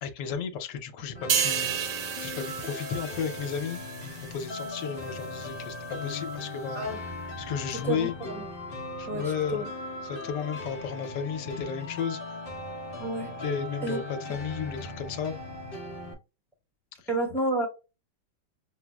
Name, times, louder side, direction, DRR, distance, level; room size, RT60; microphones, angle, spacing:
voice 1, 0.0-6.9 7.4-8.1 9.0-9.7 10.0-12.2 13.4-15.3 17.0-17.1, left 7 dB, 75° left, 1.3 m, -34 dB
sound 1, 1.1-16.1, left 2 dB, 45° left, 0.8 m, -38 dB
sound 2, 1.3-4.8 5.2-5.4, right 8 dB, 75° right, 1.3 m, -32 dB
voice 2, 7.7-8.4 9.1-9.6 13.0-13.4 13.8-14.0 17.1-17.7, right 2 dB, ahead, 0.9 m, -30 dB
5.9 x 2.0 x 2.3 m
omnidirectional pair, 1.9 m